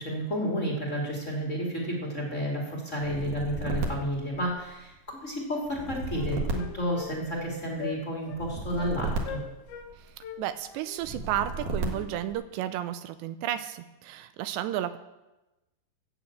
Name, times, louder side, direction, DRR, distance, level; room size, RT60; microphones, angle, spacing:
voice 1, 0.0-9.4, equal, 25° left, -1 dB, 1.7 m, -31 dB
sound 1, 3.0-5.0 5.7-7.6 8.3-10.2 11.0-12.3, right 2 dB, 55° right, 2.4 m, -34 dB
Wind instrument woodwind instrument, 5.3-5.4 5.7-7.5 7.8-8.0 8.3-8.4 8.8-9.0 9.2-9.9 10.2-12.1, left 8 dB, 80° left, 3.5 m, -41 dB
voice 2, 10.0-15.0, right 12 dB, 80° right, 11 dB, 2.7 m, -33 dB
14.5 x 7.1 x 8.4 m, 1.0 s
omnidirectional pair, 5.2 m